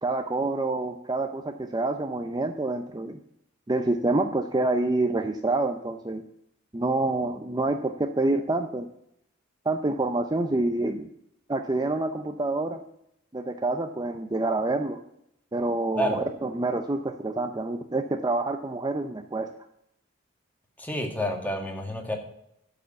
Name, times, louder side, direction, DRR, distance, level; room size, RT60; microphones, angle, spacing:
voice 1, 0.0-3.2 3.7-6.2 6.7-8.9 9.7-11.1 11.5-12.8 13.3-15.0 15.5-19.5, right 2 dB, 20° right, 6 dB, 0.6 m, -27 dB
voice 2, 20.8-22.2, equal, 10° left, 2 dB, 1.9 m, -29 dB
13.0 x 5.0 x 7.9 m, 0.78 s
head